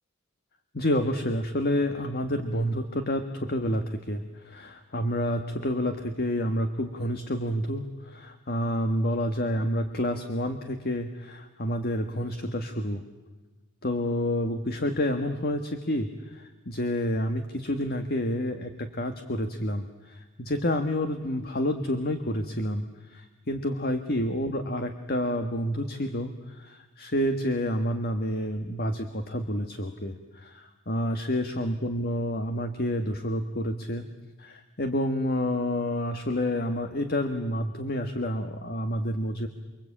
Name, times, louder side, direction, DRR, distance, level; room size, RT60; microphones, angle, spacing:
voice 1, 0.7-13.0 13.8-34.1 34.4-39.5, equal, 45° left, 7 dB, 1.6 m, -29 dB
29.5 x 23.0 x 8.8 m, 1.2 s
head